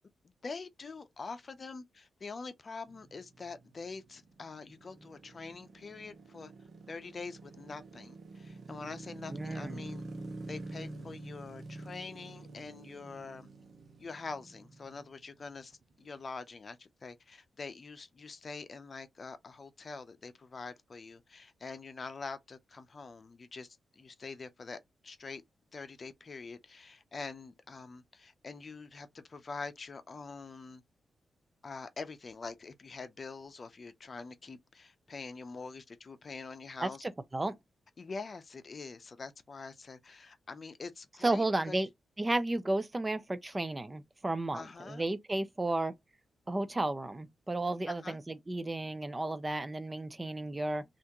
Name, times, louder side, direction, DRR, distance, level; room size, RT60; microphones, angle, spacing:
voice 1, 0.4-6.5 6.9-10.0 10.5-13.5 14.0-23.7 24.0-25.4 25.7-30.8 31.6-37.0 38.0-41.8 44.5-45.0 47.9-48.2, left 4 dB, 45° left, 0.6 m, -45 dB
sound 1, 2.9-16.2, right 2 dB, 60° right, 1.0 m, -47 dB
voice 2, 9.3-9.8 36.8-37.6 41.2-41.9 42.2-45.9 46.5-50.8, right 2 dB, 25° right, 0.5 m, -33 dB
3.4 x 2.6 x 2.9 m
cardioid pair, 85°, 0 cm